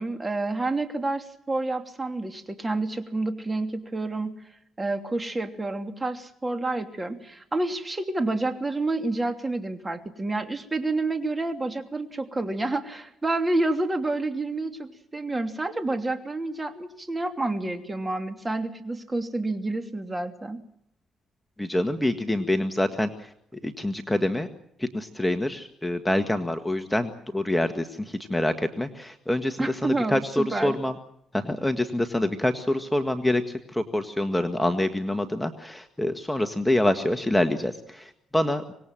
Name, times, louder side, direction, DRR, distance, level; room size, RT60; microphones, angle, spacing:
voice 1, 0.0-4.3 4.8-20.6 29.6-30.7, right 2 dB, 20° right, 7 dB, 2.9 m, -29 dB
voice 2, 21.6-24.5 24.8-31.0 31.3-38.7, left 1 dB, 5° left, 7 dB, 1.6 m, -26 dB
25.5 x 19.5 x 7.6 m, 0.76 s
cardioid pair, 90°, 0 cm